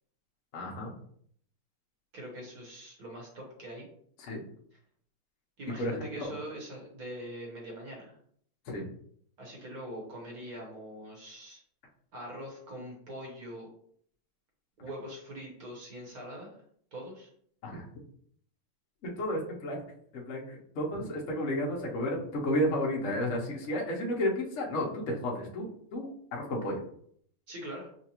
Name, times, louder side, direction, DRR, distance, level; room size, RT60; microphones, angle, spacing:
voice 1, 0.5-0.9 4.2-4.4 5.8-6.4 8.7-8.9 17.6-17.9 19.0-19.8 20.1-26.8, left 1 dB, 60° left, -1 dB, 0.7 m, -32 dB
voice 2, 2.1-3.9 5.6-8.1 9.4-11.6 12.1-13.7 14.8-16.5 16.9-17.3 20.9-21.0 27.5-27.9, equal, 50° right, -2 dB, 1.4 m, -43 dB
5.6 x 2.3 x 2.9 m, 0.63 s
omnidirectional pair, 2.4 m